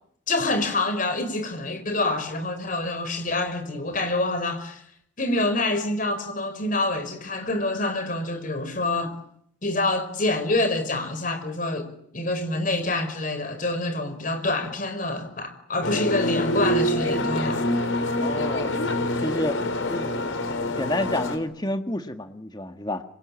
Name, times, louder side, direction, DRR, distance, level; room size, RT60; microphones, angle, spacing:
voice 1, 0.3-4.8 5.2-9.1 9.6-17.6, left 2 dB, 40° left, 4.8 m, -26 dB
sound 1, 15.8-21.4, left 1 dB, 75° left, 3.9 m, -26 dB
voice 2, 18.2-18.7 19.2-19.6 19.9-20.1 20.8-23.0, left 1 dB, 20° left, 1.7 m, -29 dB
26.5 x 24.5 x 8.8 m
head